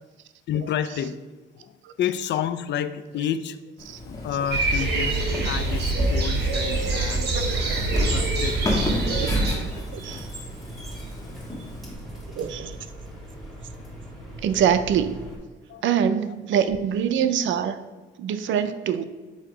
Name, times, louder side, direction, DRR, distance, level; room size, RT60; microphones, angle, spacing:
voice 1, 0.5-1.2 1.5-3.8 4.0-9.2 15.7-15.8 16.3-16.4, left 9 dB, 65° left, 13 dB, 0.4 m, -31 dB
Walk footsteps, 3.8-11.9, left 1 dB, 15° left, 1.5 m, -31 dB
sound 1, 4.5-9.5, right 3 dB, 55° right, 1.3 m, -25 dB
voice 2, 7.3-8.5 9.2-10.3 12.3-12.8 14.4-15.1 15.8-17.8 18.2-19.1, right 8 dB, 75° right, 11 dB, 0.5 m, -25 dB
sound 2, 9.1-15.4, right 1 dB, ahead, 1.8 m, -40 dB
7.7 x 2.8 x 4.9 m, 1.3 s
cardioid pair, 90°, 20 cm